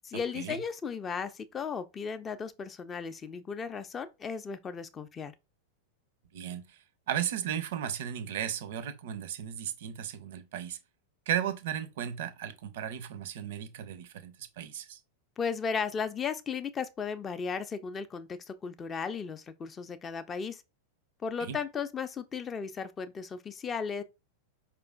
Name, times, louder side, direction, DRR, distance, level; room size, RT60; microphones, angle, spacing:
voice 1, 0.0-5.3 15.4-20.6 21.2-24.0, left 6 dB, 20° left, 0.4 m, -35 dB
voice 2, 6.3-6.8 7.1-10.8 11.3-15.0 21.4-21.6, right 10 dB, 55° right, 0.4 m, -35 dB
4.7 x 2.4 x 2.3 m
figure-of-eight pair, 90°, 0 cm